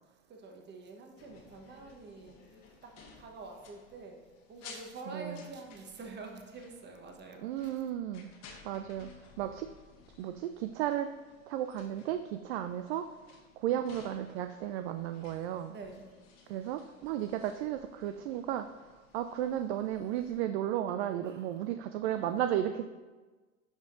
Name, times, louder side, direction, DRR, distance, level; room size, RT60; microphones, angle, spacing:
voice 1, 0.3-4.2 4.5-7.6 15.7-16.1 21.2-21.7 22.0-22.9, right 3 dB, 25° right, 3 dB, 1.1 m, -48 dB
sound 1, 1.2-20.4, left 5 dB, 40° left, 1.3 m, -57 dB
voice 2, 5.1-5.5 7.4-8.3 8.6-9.1 9.4-9.7 10.2-11.1 11.5-13.1 13.6-15.7 16.5-18.7 19.1-22.9, right 11 dB, 50° right, 9 dB, 0.4 m, -34 dB
11.5 x 5.0 x 2.6 m, 1.3 s
hypercardioid pair, 90°, 41 cm